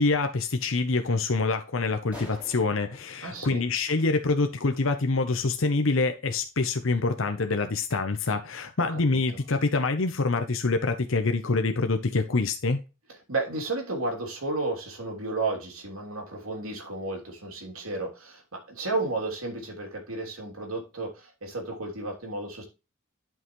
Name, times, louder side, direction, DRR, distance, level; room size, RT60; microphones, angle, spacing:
voice 1, 0.0-12.8, left 3 dB, 65° left, 0.8 m, -26 dB
sound 1, 2.1-4.7, left 1 dB, 5° right, 3.7 m, -48 dB
voice 2, 3.2-3.6 8.8-9.4 13.3-22.6, right 2 dB, 85° right, 3.0 m, -33 dB
11.0 x 5.6 x 3.1 m
head